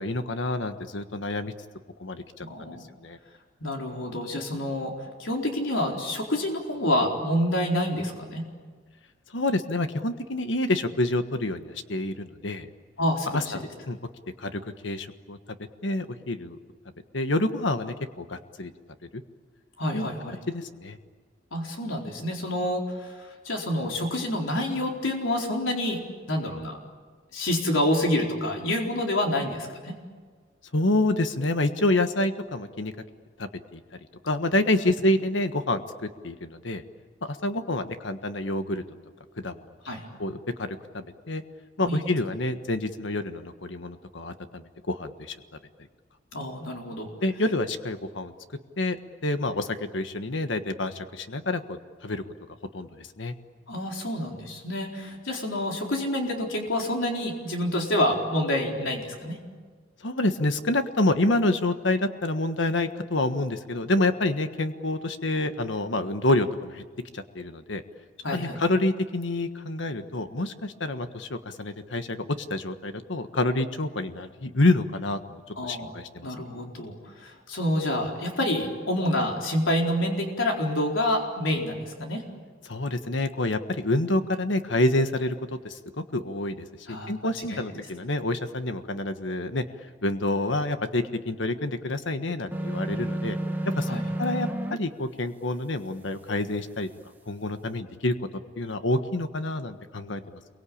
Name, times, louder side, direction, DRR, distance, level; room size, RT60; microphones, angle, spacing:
voice 1, 0.0-1.5 2.0-2.7 3.0-3.2 9.3-12.7 13.3-14.0 14.4-15.4 15.8-16.6 17.1-18.7 19.1-19.2 19.9-20.1 20.5-21.0 30.7-32.9 33.4-33.8 34.2-35.8 36.2-36.8 37.4-38.8 39.4-39.6 40.2-41.4 41.8-45.4 47.2-48.3 48.8-49.0 49.2-52.2 52.7-53.3 60.0-66.8 67.1-67.8 68.3-72.2 72.5-76.3 82.6-85.8 86.1-89.6 90.0-93.4 93.6-93.9 94.2-96.9 97.3-98.1 98.6-100.2, left 2 dB, 70° left, 9 dB, 1.5 m, -27 dB
voice 2, 2.4-2.9 3.6-4.9 5.2-8.5 13.0-13.5 19.8-20.3 21.5-26.0 26.3-26.8 27.3-29.9 39.8-40.1 41.8-42.0 46.3-47.1 53.7-59.4 68.2-68.6 75.6-75.9 76.2-82.2 86.9-87.1 87.5-87.6 93.9-94.0, left 1 dB, 85° left, 0 dB, 4.3 m, -28 dB
sound 1, 92.5-94.8, right 1 dB, 10° right, 1.5 m, -30 dB
28.5 x 23.5 x 8.7 m, 1.5 s
head